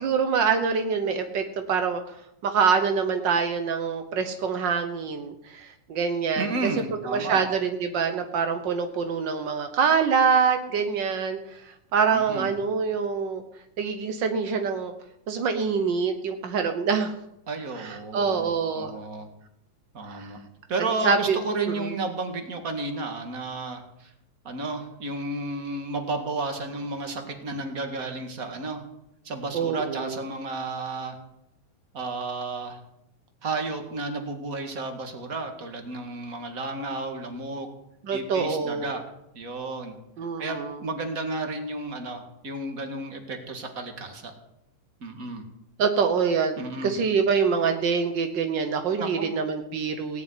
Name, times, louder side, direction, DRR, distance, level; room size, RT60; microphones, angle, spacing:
voice 1, 0.0-2.0 2.4-6.5 7.1-11.6 11.9-13.4 13.8-14.9 15.3-17.2 17.7-18.9 20.1-20.3 21.0-21.4 21.7-22.0 29.5-30.2 38.0-39.0 40.2-40.8 45.8-50.2, right 6 dB, 70° right, 6 dB, 1.0 m, -25 dB
voice 2, 6.4-7.4 12.1-12.5 17.5-19.3 19.9-20.4 20.7-24.1 24.4-28.8 29.2-31.2 31.9-32.8 33.4-37.7 38.1-39.0 39.3-39.9 40.4-44.3 45.0-45.4 46.6-46.9 49.0-49.3, right 3 dB, 30° right, 5 dB, 2.0 m, -32 dB
18.0 x 7.1 x 9.6 m, 0.81 s
omnidirectional pair, 3.5 m